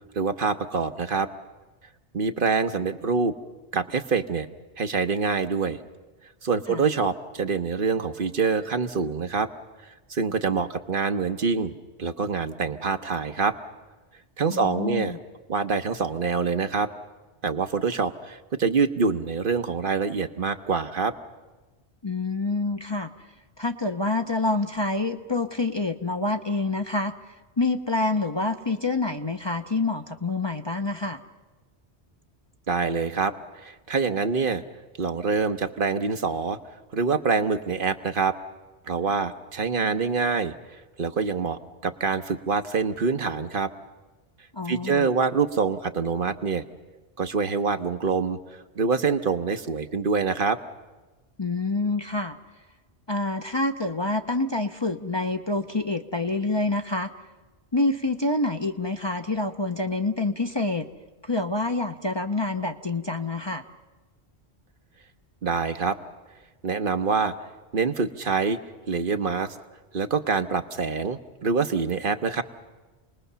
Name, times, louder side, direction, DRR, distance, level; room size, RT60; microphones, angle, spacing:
voice 1, 0.1-1.3 2.1-3.3 3.7-4.5 4.8-5.8 6.4-9.5 10.1-11.7 12.0-13.5 14.4-15.2 15.5-16.9 17.4-21.1 32.7-34.6 35.0-36.6 36.9-38.3 38.9-40.5 41.0-43.7 44.7-46.6 47.2-48.4 48.8-50.6 65.4-66.0 66.6-67.3 67.7-68.6 68.9-69.6 69.9-72.4, right 5 dB, 55° right, 8 dB, 1.1 m, -25 dB
voice 2, 14.5-15.2 22.0-23.1 23.6-27.1 27.6-31.2 44.5-45.1 51.4-52.4 53.1-57.1 57.7-60.9 61.2-63.6, left 2 dB, 25° left, 6 dB, 0.8 m, -27 dB
28.5 x 20.0 x 6.8 m, 1.2 s
omnidirectional pair, 1.1 m